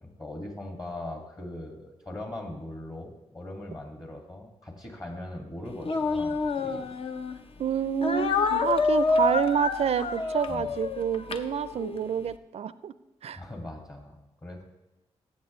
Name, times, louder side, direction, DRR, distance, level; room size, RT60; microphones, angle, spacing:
voice 1, 0.0-6.9 10.5-10.7 13.3-14.2 14.4-14.6, left 1 dB, 30° left, 3 dB, 2.0 m, -40 dB
Speech, 5.8-7.4 8.0-12.0, left 4 dB, 50° left, 0.7 m, -28 dB
voice 2, 7.6-12.9 13.2-13.4, right 8 dB, 55° right, 16 dB, 0.4 m, -28 dB
12.5 x 7.7 x 3.1 m, 1.0 s
supercardioid pair, 40°, 13 cm